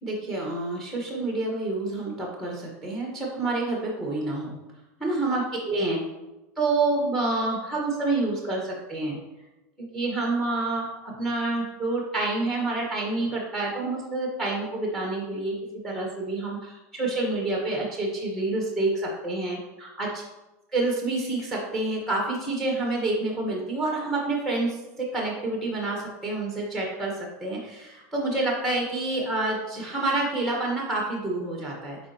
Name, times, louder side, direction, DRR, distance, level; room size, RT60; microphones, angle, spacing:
voice 1, 0.0-4.5 5.0-6.0 6.6-9.2 9.9-15.6 15.8-20.2 20.7-27.1 27.4-32.0, right 2 dB, 5° left, -2 dB, 1.4 m, -28 dB
8.4 x 4.3 x 3.0 m, 1.0 s
supercardioid pair, 125°, 9 cm